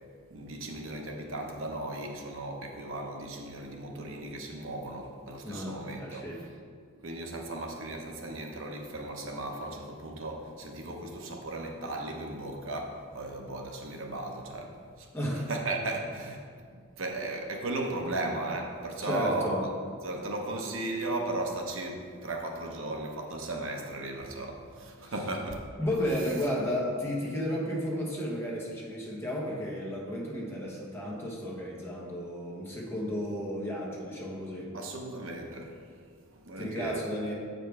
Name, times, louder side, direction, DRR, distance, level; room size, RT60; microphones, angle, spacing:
voice 1, 0.3-6.2 7.0-15.1 15.5-16.4 16.7-19.7 20.0-25.7 34.7-35.8 36.3-37.0, right 2 dB, 65° right, 2 dB, 0.8 m, -36 dB
voice 2, 5.4-6.4 15.1-15.5 19.0-19.6 25.0-25.1 25.8-34.7 36.6-37.3, equal, 10° left, -3 dB, 1.1 m, -33 dB
7.5 x 5.2 x 4.7 m, 2.1 s
head